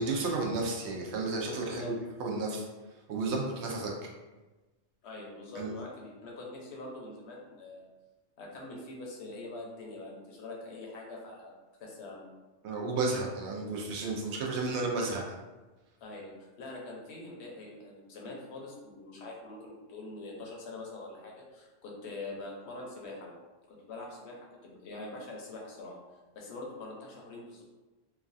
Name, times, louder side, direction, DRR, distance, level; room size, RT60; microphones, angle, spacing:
voice 1, 0.0-1.9 2.2-2.7 3.1-3.9 5.5-5.7 12.6-15.2, right 3 dB, 80° right, -1 dB, 0.9 m, -32 dB
voice 2, 1.6-1.9 5.0-7.8 8.4-11.5 11.8-12.2 16.0-23.4 23.9-24.4 24.6-26.0 26.3-27.6, left 2 dB, 75° left, -2 dB, 1.0 m, -44 dB
3.1 x 2.3 x 2.5 m, 1.2 s
omnidirectional pair, 1.2 m